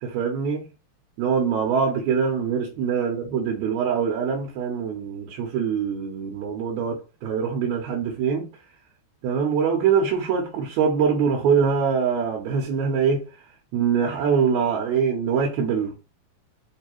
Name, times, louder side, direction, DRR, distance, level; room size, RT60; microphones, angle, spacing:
voice 1, 0.0-0.7 1.2-8.5 9.2-13.2 13.7-16.0, right 6 dB, 75° right, 2.0 m, -23 dB
4.7 x 2.7 x 3.0 m
omnidirectional pair, 3.5 m